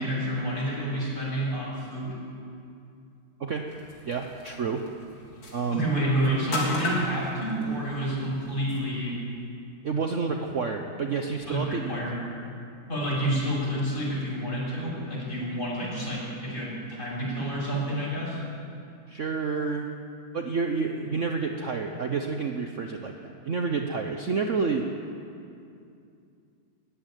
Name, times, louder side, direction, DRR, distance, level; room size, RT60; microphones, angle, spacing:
voice 1, 0.0-2.2 5.7-9.2 11.5-12.2 12.9-18.4, right 1 dB, 25° left, -6 dB, 7.0 m, -29 dB
sound 1, 3.7-8.8, left 2 dB, 90° left, 4.2 m, -37 dB
voice 2, 4.1-4.8 5.5-5.9 9.8-12.0 19.1-19.9 20.3-24.9, right 4 dB, 50° right, 4 dB, 1.1 m, -29 dB
20.0 x 14.5 x 9.1 m, 2.5 s
omnidirectional pair, 2.1 m